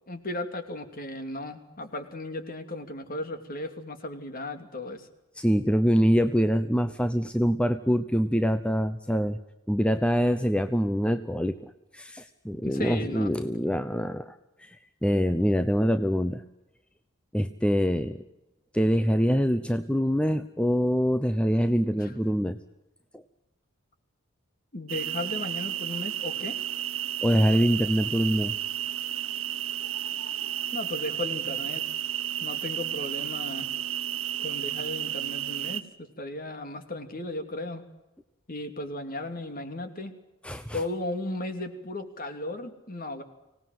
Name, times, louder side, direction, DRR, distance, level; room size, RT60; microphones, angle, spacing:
voice 1, 0.1-5.1 12.6-13.3 22.0-22.1 24.7-26.6 30.7-31.8 32.4-33.7 34.4-37.9 38.5-40.1 40.7-43.2, left 2 dB, 40° left, 8 dB, 2.8 m, -35 dB
voice 2, 5.4-9.4 9.7-16.4 17.3-18.2 18.7-22.6 23.1-23.2 27.2-28.5 40.4-40.8, equal, 5° left, 9 dB, 0.8 m, -25 dB
sound 1, 24.9-35.8, right 11 dB, 70° right, 1.4 m, -32 dB
25.0 x 18.5 x 9.3 m, 0.99 s
head